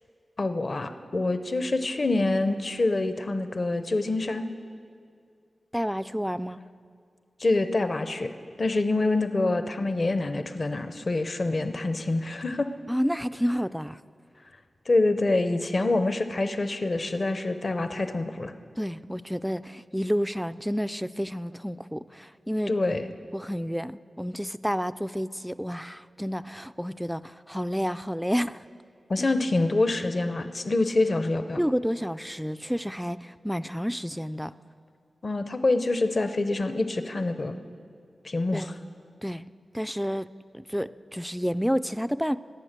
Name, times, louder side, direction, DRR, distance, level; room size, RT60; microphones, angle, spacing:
voice 1, 0.4-4.5 7.4-8.3 8.6-12.7 14.9-18.5 22.7-23.1 29.1-31.6 35.2-37.6 38.2-38.7, left 2 dB, 45° left, 9 dB, 0.7 m, -26 dB
voice 2, 5.7-6.6 12.9-14.0 18.8-22.8 23.3-28.6 31.6-34.5 38.5-38.7 39.2-39.5 39.7-42.4, equal, ahead, 14 dB, 0.3 m, -30 dB
25.0 x 8.5 x 6.6 m, 2.3 s
wide cardioid pair, 95°, 0 cm